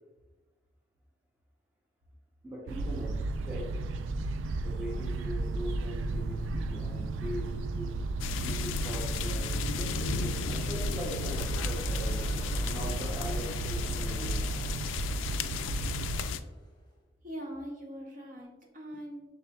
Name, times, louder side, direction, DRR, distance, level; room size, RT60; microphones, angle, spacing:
voice 1, 2.4-3.9 4.6-8.1 8.4-12.3 12.7-14.5, equal, 10° right, -4 dB, 0.7 m, -41 dB
sound 1, 2.7-16.3, right 2 dB, 80° right, 0.3 m, -33 dB
sound 2, 8.2-16.4, left 7 dB, 90° left, 0.3 m, -36 dB
sound 3, 11.2-16.9, left 1 dB, 20° left, 0.8 m, -47 dB
voice 2, 17.2-19.2, equal, 45° right, 0 dB, 0.8 m, -42 dB
5.5 x 3.4 x 2.3 m, 1.1 s
head